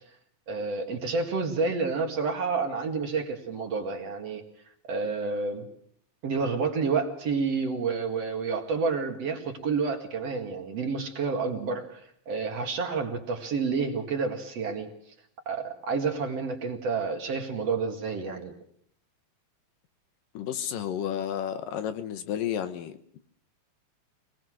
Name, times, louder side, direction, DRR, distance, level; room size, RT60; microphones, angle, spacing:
voice 1, 0.5-4.4 4.9-5.7 6.2-12.0 12.3-14.9 15.5-18.5, right 4 dB, 50° right, 3 dB, 2.9 m, -29 dB
voice 2, 20.3-23.2, left 9 dB, 75° left, 9 dB, 2.8 m, -32 dB
25.0 x 20.0 x 6.3 m, 0.64 s
omnidirectional pair, 4.0 m